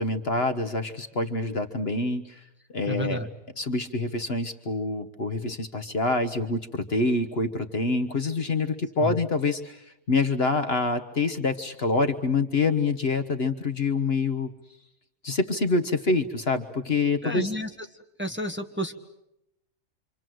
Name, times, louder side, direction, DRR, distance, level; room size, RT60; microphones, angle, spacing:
voice 1, 0.0-2.4 2.7-3.3 3.6-14.5 15.2-17.5, left 3 dB, 50° left, 9 dB, 1.4 m, -26 dB
voice 2, 2.9-3.3 9.0-9.2 17.2-17.7 18.2-18.9, right 1 dB, 10° right, 3 dB, 1.6 m, -30 dB
27.0 x 26.0 x 7.8 m, 0.85 s
omnidirectional pair, 1.4 m